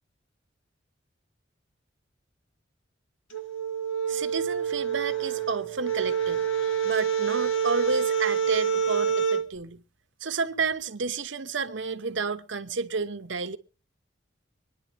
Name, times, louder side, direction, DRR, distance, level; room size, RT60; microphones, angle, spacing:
sound 1, 3.3-9.4, right 7 dB, 85° left, 1.5 m, -27 dB
voice 1, 4.1-9.8 10.2-13.6, right 4 dB, 70° right, 0.9 m, -31 dB
24.5 x 10.0 x 3.3 m
head